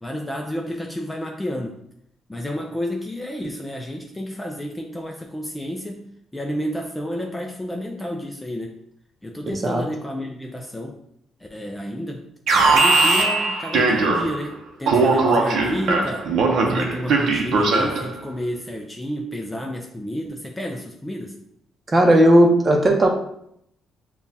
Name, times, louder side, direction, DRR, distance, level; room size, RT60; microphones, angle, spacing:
voice 1, 0.0-1.8 2.3-6.0 6.3-8.8 9.2-11.0 11.4-16.3 16.6-21.3, equal, 10° left, 1 dB, 0.4 m, -30 dB
voice 2, 9.4-9.8 21.9-23.1, right 1 dB, 25° right, 2 dB, 0.8 m, -15 dB
Alarm, 12.5-14.5 14.9-18.1, right 3 dB, 70° right, 0.7 m, -19 dB
7.0 x 2.4 x 2.7 m, 0.73 s
cardioid pair, 140°, 0 cm